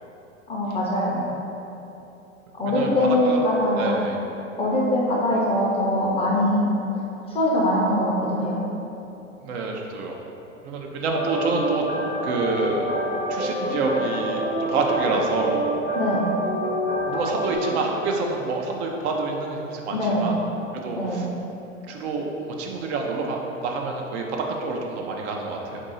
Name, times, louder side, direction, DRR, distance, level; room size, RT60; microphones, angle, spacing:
voice 1, 0.5-1.2 2.5-4.0 4.6-6.7 7.3-8.6 15.9-16.3 19.9-20.3 21.0-21.2, left 1 dB, 15° left, -4 dB, 0.5 m, -22 dB
voice 2, 3.8-4.2 9.4-10.2 10.6-11.8 12.2-12.9 13.3-15.6 17.0-20.3 20.8-21.3 21.9-22.3 22.6-25.8, right 3 dB, 55° right, 1 dB, 0.6 m, -27 dB
sound 1, 11.1-17.6, right 1 dB, 25° right, 0.7 m, -28 dB
4.0 x 2.7 x 3.9 m, 2.9 s
hypercardioid pair, 100°, 39 cm